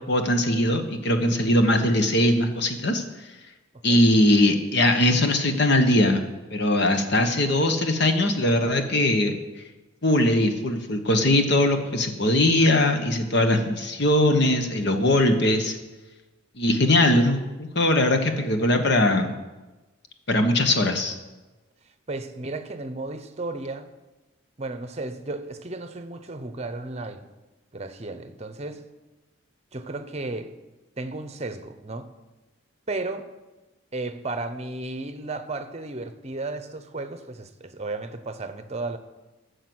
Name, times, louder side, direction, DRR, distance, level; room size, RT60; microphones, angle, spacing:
voice 1, 0.1-3.0 3.8-6.2 6.5-9.4 10.0-15.8 16.6-19.3 20.3-21.2, left 1 dB, 55° left, 1.1 m, -21 dB
voice 2, 22.1-23.9 24.6-27.3 27.7-28.8 29.7-30.5 31.0-32.1 32.9-33.3 33.9-39.0, right 2 dB, 30° right, 0.8 m, -34 dB
14.0 x 6.7 x 7.8 m
head